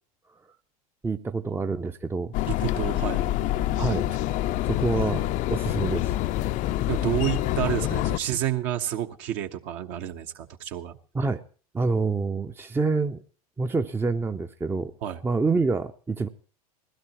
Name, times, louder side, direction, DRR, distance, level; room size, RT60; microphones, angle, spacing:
voice 1, 1.0-2.3 3.8-4.2 4.7-6.1 7.6-7.7 11.1-11.4 11.7-13.2 13.6-14.9 15.2-16.3, right 4 dB, 10° right, 8 dB, 0.6 m, -27 dB
sound 1, 2.3-8.2, left 14 dB, 45° left, 0.6 m, -26 dB
voice 2, 2.5-3.3 6.9-11.0 15.0-15.2, right 11 dB, 55° right, 5 dB, 1.3 m, -29 dB
20.0 x 16.0 x 3.0 m, 0.42 s
hypercardioid pair, 95°, 19 cm